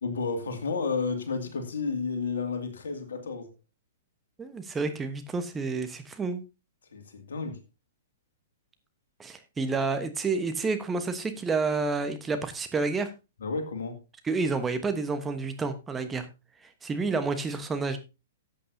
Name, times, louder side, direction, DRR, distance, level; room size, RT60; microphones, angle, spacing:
voice 1, 0.0-3.5 6.9-7.6 13.4-14.0, left 4 dB, 70° left, 2.4 m, -31 dB
voice 2, 4.4-6.4 9.2-13.1 14.2-16.3 16.6-18.0, right 4 dB, 15° right, 1.2 m, -29 dB
14.0 x 8.4 x 2.8 m
figure-of-eight pair, 115°, 0 cm